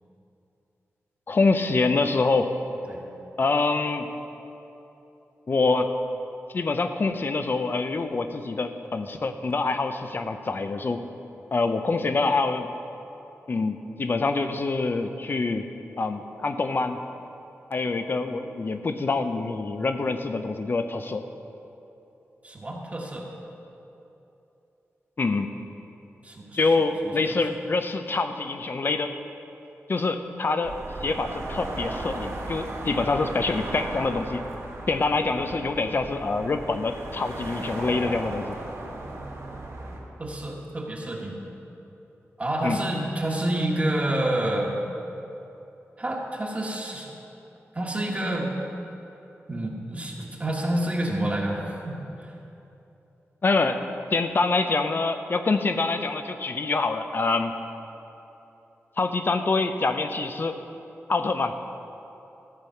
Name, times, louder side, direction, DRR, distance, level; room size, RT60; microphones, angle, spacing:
voice 1, 1.3-2.5 3.4-4.1 5.5-5.9 6.5-11.0 11.5-12.7 13.5-15.7 16.0-17.0 17.7-21.3 25.2-25.5 26.5-29.1 29.9-30.8 31.0-34.4 34.9-38.6 42.6-42.8 53.4-53.8 54.1-57.5 59.0-60.6 61.1-61.5, left 3 dB, 45° left, 8 dB, 0.7 m, -25 dB
voice 2, 22.4-23.3 26.2-26.6 27.0-27.4 40.2-41.4 42.4-44.7 46.0-47.1 47.7-48.5 49.5-52.3, right 1 dB, 30° right, -2 dB, 1.5 m, -28 dB
sound 1, 30.6-40.0, right 2 dB, 85° right, 2.3 m, -36 dB
14.0 x 8.2 x 5.8 m, 2.9 s
wide cardioid pair, 105°, 5 cm